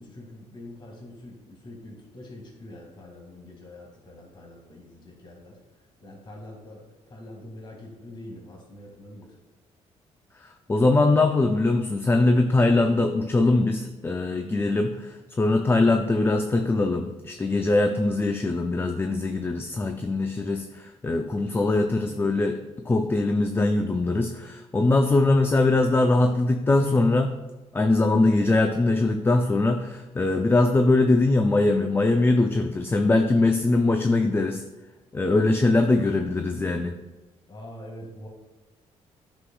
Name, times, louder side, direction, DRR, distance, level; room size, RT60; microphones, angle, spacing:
voice 1, 0.0-5.6 6.0-6.8 7.1-9.3 37.5-38.3, left 1 dB, 40° left, 0 dB, 2.0 m, -44 dB
voice 2, 10.4-22.6 22.9-27.3 27.7-34.6 35.1-36.9, left 2 dB, 20° left, 5 dB, 0.5 m, -22 dB
9.7 x 6.2 x 2.3 m, 1.2 s
cardioid pair, 95°, 12 cm